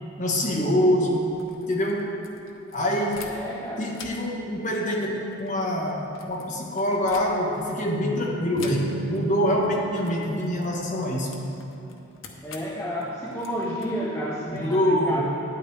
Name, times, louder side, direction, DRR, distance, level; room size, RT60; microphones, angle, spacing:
voice 1, 0.2-1.3 1.7-2.2 2.7-3.3 3.8-11.5 14.5-15.2, equal, 35° left, -2 dB, 1.3 m, -25 dB
sound 1, 1.2-3.6 3.9-7.7 8.5-9.2 9.5-9.7 10.0-14.6, left 5 dB, 75° left, 0.9 m, -47 dB
voice 2, 3.3-3.9 12.4-15.2, equal, 10° left, -5 dB, 0.7 m, -31 dB
Bass guitar, 8.6-12.5, right 8 dB, 80° right, 0.3 m, -39 dB
12.0 x 9.3 x 3.3 m, 2.9 s
head